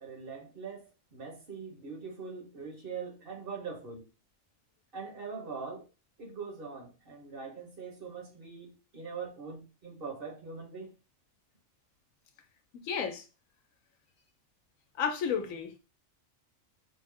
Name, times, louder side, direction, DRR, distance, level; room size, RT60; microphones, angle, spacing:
voice 1, 0.0-4.1 4.9-5.8 6.2-10.9, right 5 dB, 45° right, 1.2 m, -42 dB
voice 2, 12.7-13.3 15.0-15.8, left 6 dB, 85° left, 1.1 m, -32 dB
5.4 x 2.0 x 3.6 m
omnidirectional pair, 1.4 m